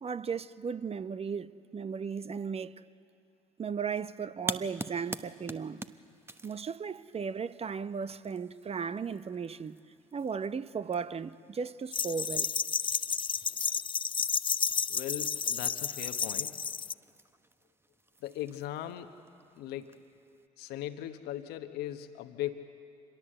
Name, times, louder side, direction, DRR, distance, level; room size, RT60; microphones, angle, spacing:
voice 1, 0.0-2.8 3.6-5.8 6.4-9.8 10.1-12.5, right 6 dB, 35° right, 0.9 m, -36 dB
sound 1, 4.4-20.5, right 2 dB, 15° right, 1.2 m, -47 dB
sound 2, 11.9-16.9, left 6 dB, 30° left, 0.5 m, -31 dB
voice 2, 14.9-16.6 18.2-19.1 19.6-20.0 20.6-22.5, left 12 dB, 70° left, 1.1 m, -39 dB
27.0 x 22.0 x 7.8 m
hypercardioid pair, 50°, 17 cm